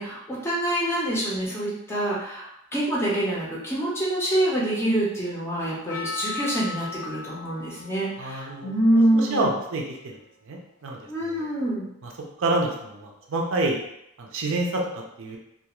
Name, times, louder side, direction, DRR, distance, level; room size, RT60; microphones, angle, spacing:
voice 1, 0.0-9.5 11.1-11.9, right 1 dB, 10° left, -6 dB, 0.5 m, -26 dB
Percussion, 5.9-10.2 10.9-11.0, left 4 dB, 65° left, 0.3 m, -38 dB
voice 2, 8.2-10.2 10.5-11.5 12.4-13.8 14.2-15.4, right 2 dB, 60° right, 0 dB, 0.4 m, -28 dB
2.4 x 2.3 x 2.9 m, 0.80 s
head